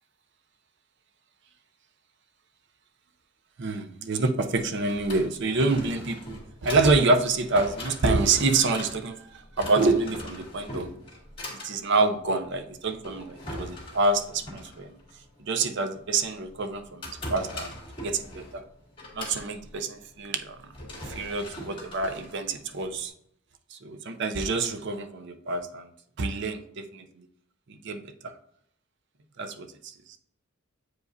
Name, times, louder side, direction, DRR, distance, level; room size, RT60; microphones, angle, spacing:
voice 1, 3.6-9.2 9.6-10.9 11.5-15.0 15.4-17.7 18.0-18.6 19.1-20.6 21.1-23.1 23.7-25.9 26.2-27.0 27.8-28.3 29.4-30.2, right 3 dB, 60° right, 8 dB, 0.6 m, -27 dB
Drawer open or close, 4.7-23.1, left 1 dB, 25° left, 2.1 m, -42 dB
8.0 x 4.9 x 2.7 m, 0.69 s
head